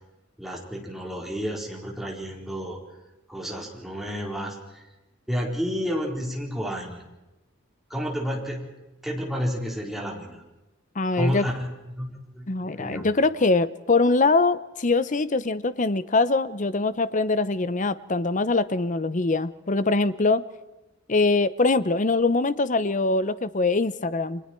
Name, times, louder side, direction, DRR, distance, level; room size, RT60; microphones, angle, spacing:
voice 1, 0.4-2.8 3.3-4.8 5.3-7.0 7.9-8.7 9.0-10.4 11.1-11.7 11.9-13.1, equal, ahead, -2 dB, 4.3 m, -30 dB
voice 2, 11.0-11.5 12.5-20.4 21.1-24.4, left 3 dB, 40° left, 14 dB, 0.8 m, -23 dB
30.0 x 23.5 x 4.6 m, 1.0 s
head